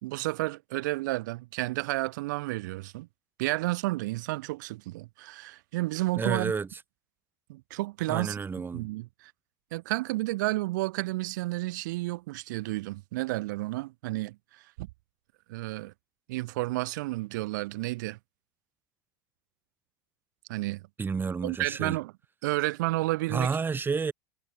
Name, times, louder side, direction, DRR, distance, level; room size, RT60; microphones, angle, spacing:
voice 1, 0.0-3.1 3.4-6.5 7.5-8.4 8.7-9.3 9.7-14.9 15.5-15.9 16.3-18.2 20.5-20.8 21.4-22.1 22.4-23.5, right 20 dB, 70° right, 5.3 m, -31 dB
voice 2, 6.2-6.7 8.1-8.9 21.0-22.0 23.3-24.1, right 5 dB, 20° right, 7.9 m, -30 dB
hypercardioid pair, 105°, 10 cm